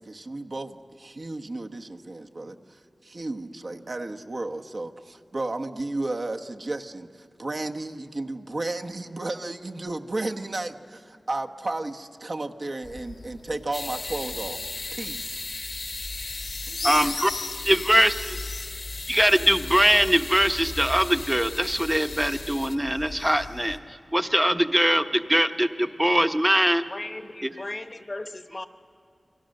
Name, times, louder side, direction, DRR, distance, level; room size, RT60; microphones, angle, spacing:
voice 1, 0.0-14.6 14.9-15.5, right 2 dB, 50° right, 4 dB, 1.1 m, -33 dB
sound 1, 12.8-23.8, left 3 dB, 85° left, 1.3 m, -39 dB
sound 2, 13.7-22.7, left 3 dB, 55° left, 1.2 m, -37 dB
voice 2, 16.8-17.3 17.6-18.4 19.1-26.8, equal, 10° right, 9 dB, 0.9 m, -22 dB
voice 3, 26.9-28.7, left 2 dB, 35° left, 9 dB, 1.0 m, -36 dB
28.5 x 23.0 x 6.5 m, 2.2 s
wide cardioid pair, 80°, 0 cm